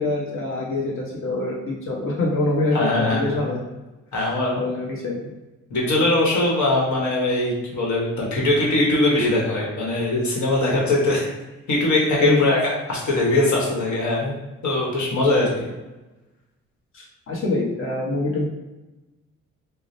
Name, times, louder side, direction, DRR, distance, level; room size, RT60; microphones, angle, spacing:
voice 1, 0.0-2.9 3.1-3.6 4.2-4.3 4.6-5.3 12.2-12.5 16.9-18.4, left 2 dB, 45° left, -4 dB, 1.2 m, -24 dB
voice 2, 2.7-3.4 4.1-4.6 5.7-11.3 11.7-12.6 12.9-14.3 14.6-15.7, left 2 dB, 70° left, -3 dB, 1.2 m, -21 dB
4.8 x 2.1 x 2.7 m, 1.1 s
cardioid pair, 90°, 30 cm